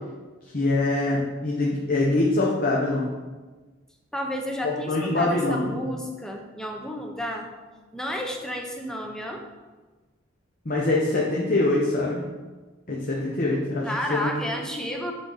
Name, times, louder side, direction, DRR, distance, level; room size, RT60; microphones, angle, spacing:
voice 1, 0.5-3.1 4.9-5.8 10.6-12.2 12.9-14.3, left 2 dB, 45° left, -3 dB, 0.9 m, -24 dB
voice 2, 4.1-7.5 7.9-9.4 13.8-15.1, equal, 5° left, 2 dB, 0.7 m, -31 dB
9.0 x 3.9 x 4.1 m, 1.3 s
head